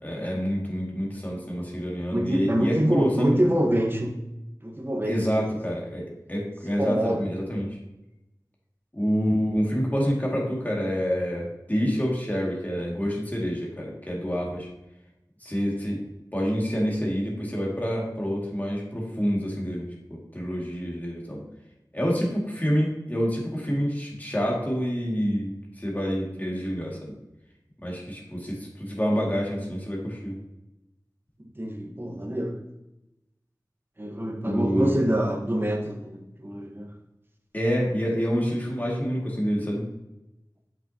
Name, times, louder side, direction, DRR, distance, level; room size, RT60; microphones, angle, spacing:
voice 1, 0.0-3.3 5.0-7.8 8.9-14.7 15.4-16.0 16.3-21.4 21.9-25.5 25.8-27.1 27.8-30.4 34.4-35.0 37.5-39.8, equal, 25° left, -3 dB, 2.3 m, -27 dB
voice 2, 2.1-4.2 4.6-5.3 6.8-7.3 31.6-32.6 34.0-36.9, right 1 dB, 30° right, 1 dB, 1.3 m, -26 dB
7.4 x 6.1 x 2.9 m, 0.92 s
wide cardioid pair, 55°, 7 cm